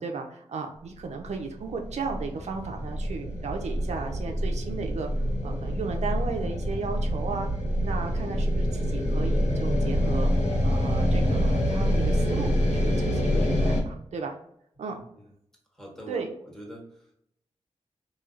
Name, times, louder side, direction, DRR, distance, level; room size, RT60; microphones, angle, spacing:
voice 1, 0.0-5.1 5.4-7.5 7.8-10.3 10.6-14.4 14.8-15.0 16.1-16.3, right 4 dB, 75° right, 3 dB, 0.4 m, -35 dB
sound 1, 1.2-13.8, equal, 85° left, 1.0 m, -26 dB
voice 2, 14.9-15.2 15.7-17.2, equal, 5° left, -2 dB, 1.3 m, -44 dB
3.0 x 2.7 x 2.4 m, 0.72 s
cardioid pair, 60°, 12 cm